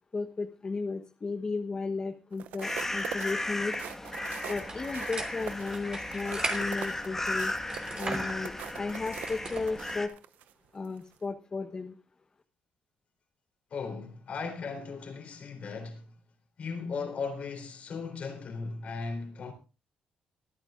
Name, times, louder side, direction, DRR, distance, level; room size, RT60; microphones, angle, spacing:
voice 1, 0.1-3.8 4.5-7.5 8.0-10.1 10.7-12.0, left 4 dB, 35° left, 1.2 m, -34 dB
sound 1, 2.3-10.5 11.0-11.2, right 11 dB, 85° right, 0.6 m, -43 dB
sound 2, 2.6-10.1, left 2 dB, 15° left, 1.6 m, -35 dB
sound 3, 4.6-9.8, right 3 dB, 30° right, 2.9 m, -40 dB
voice 2, 13.7-16.1 16.6-19.5, left 4 dB, 60° left, 3.8 m, -37 dB
24.5 x 9.0 x 2.5 m
cardioid pair, 85°, 3 cm